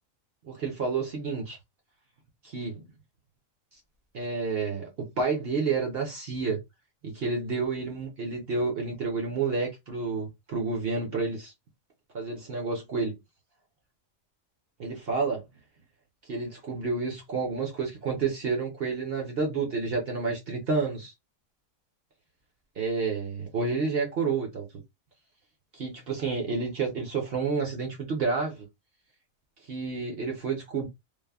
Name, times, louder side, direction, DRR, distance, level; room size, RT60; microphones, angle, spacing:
voice 1, 0.4-1.6 2.4-2.8 4.1-6.6 7.0-11.5 12.1-13.2 14.8-15.4 16.3-21.1 22.8-24.7 25.7-28.7 29.7-30.9, right 4 dB, 55° right, 0.8 m, -30 dB
3.3 x 2.0 x 2.2 m
omnidirectional pair, 1.4 m